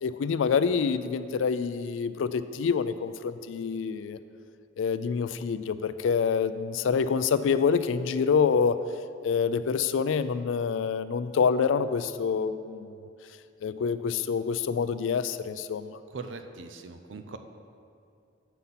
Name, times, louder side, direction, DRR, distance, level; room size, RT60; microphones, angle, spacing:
voice 1, 0.0-4.2 4.8-8.8 9.2-12.9 13.6-16.0, left 6 dB, 85° left, 13 dB, 0.4 m, -26 dB
voice 2, 16.1-17.4, right 4 dB, 75° right, 7 dB, 0.6 m, -40 dB
8.0 x 5.7 x 5.7 m, 2.5 s
head